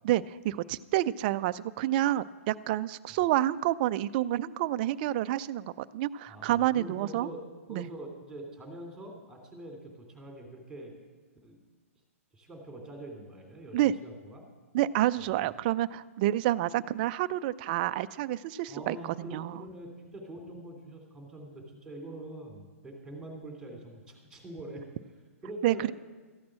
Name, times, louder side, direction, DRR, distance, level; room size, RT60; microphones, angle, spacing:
voice 1, 0.0-7.3 7.7-7.9 13.7-13.9 14.7-19.6 25.6-25.9, right 14 dB, 40° right, 14 dB, 0.4 m, -29 dB
voice 2, 6.3-7.4 7.7-10.9 11.4-11.6 12.3-14.4 15.2-15.5 18.7-24.9 25.4-25.8, right 1 dB, 5° right, 2 dB, 2.9 m, -44 dB
14.0 x 8.5 x 7.5 m, 1.4 s
hypercardioid pair, 135°, 8 cm